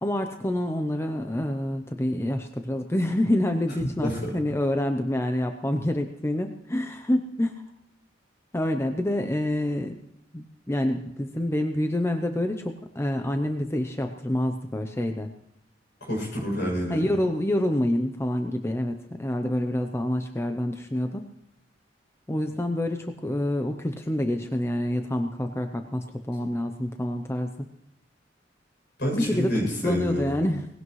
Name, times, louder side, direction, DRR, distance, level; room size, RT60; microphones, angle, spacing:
voice 1, 0.0-7.5 8.5-10.0 10.3-15.3 16.9-21.2 22.3-27.5 29.1-29.5 29.8-30.7, left 1 dB, 15° left, 5 dB, 0.7 m, -27 dB
voice 2, 4.0-4.3 16.0-17.1 29.0-30.3, equal, 65° left, 0 dB, 7.4 m, -28 dB
19.0 x 16.5 x 3.2 m, 0.79 s
head